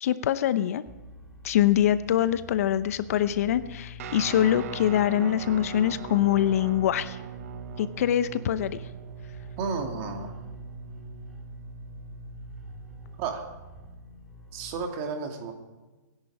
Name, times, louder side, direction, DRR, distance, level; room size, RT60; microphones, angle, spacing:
voice 1, 0.0-0.8 1.4-7.2 7.8-8.8, left 11 dB, 50° left, 14 dB, 0.8 m, -24 dB
sound 1, 0.9-14.9, left 2 dB, ahead, 2.7 m, -45 dB
Guitar, 4.0-13.4, right 9 dB, 50° right, 1.0 m, -41 dB
voice 2, 9.6-10.3 13.2-13.5 14.5-15.5, right 5 dB, 30° right, 4 dB, 2.6 m, -32 dB
25.0 x 11.0 x 4.8 m, 1.2 s
hypercardioid pair, 150°, 10 cm